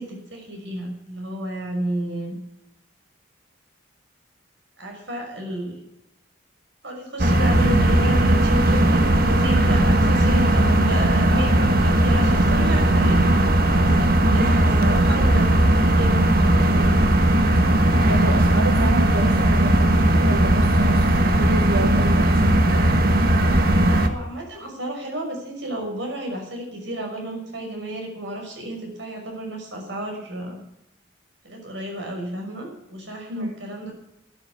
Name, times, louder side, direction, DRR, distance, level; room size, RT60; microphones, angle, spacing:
voice 1, 0.0-2.4 4.8-5.8 6.8-13.2 13.7-17.0 23.8-30.6 31.4-33.9, right 1 dB, 65° right, 2 dB, 5.9 m, -32 dB
sound 1, 7.2-24.1, right 1 dB, 50° right, 1.5 m, -18 dB
voice 2, 18.1-22.9 33.3-33.5, right 1 dB, 90° right, 4 dB, 1.6 m, -28 dB
12.5 x 12.5 x 6.8 m, 0.84 s
head